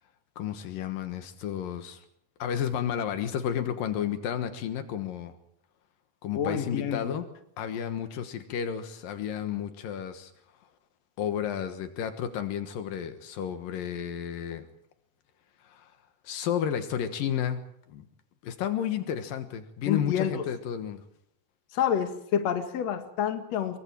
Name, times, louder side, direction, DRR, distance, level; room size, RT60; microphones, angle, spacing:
voice 1, 0.4-2.0 2.4-5.3 6.2-7.3 7.6-10.3 11.2-14.7 15.6-15.9 16.2-17.6 17.9-18.1 18.4-21.0, left 9 dB, 80° left, 8 dB, 3.1 m, -32 dB
voice 2, 6.4-7.1 19.9-20.5 21.7-23.8, left 9 dB, 55° left, 7 dB, 2.7 m, -28 dB
26.5 x 23.0 x 4.5 m, 0.72 s
omnidirectional pair, 4.0 m